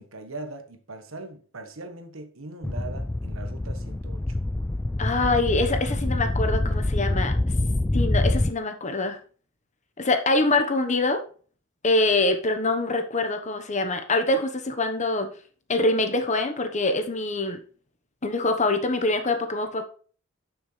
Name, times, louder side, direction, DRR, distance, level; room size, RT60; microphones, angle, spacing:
voice 1, 0.0-4.4, right 2 dB, 75° right, 1.3 m, -40 dB
sound 1, 2.6-8.5, left 1 dB, 10° left, 0.3 m, -25 dB
voice 2, 5.0-7.3 7.9-9.2 10.0-11.2 11.8-15.3 15.7-17.6 18.2-19.8, left 2 dB, 35° left, 1.1 m, -24 dB
11.0 x 6.2 x 3.3 m
head